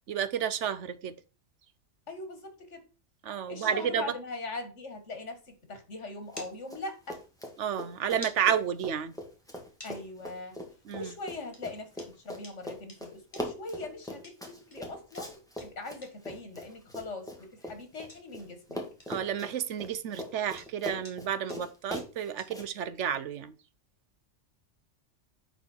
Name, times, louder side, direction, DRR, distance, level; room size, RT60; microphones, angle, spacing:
voice 1, 0.1-1.1 3.2-4.0 7.6-9.1 10.9-11.1 19.1-23.5, right 8 dB, 80° right, 1.1 m, -31 dB
voice 2, 2.1-2.8 3.5-7.2 9.8-10.6 10.9-18.8, left 2 dB, 80° left, 2.3 m, -41 dB
sound 1, 4.9-22.8, left 1 dB, 25° left, 2.1 m, -55 dB
Run, 6.3-6.8 7.1-18.4 18.7-22.7, left 1 dB, 5° left, 2.0 m, -41 dB
10.0 x 4.6 x 4.5 m
omnidirectional pair, 1.2 m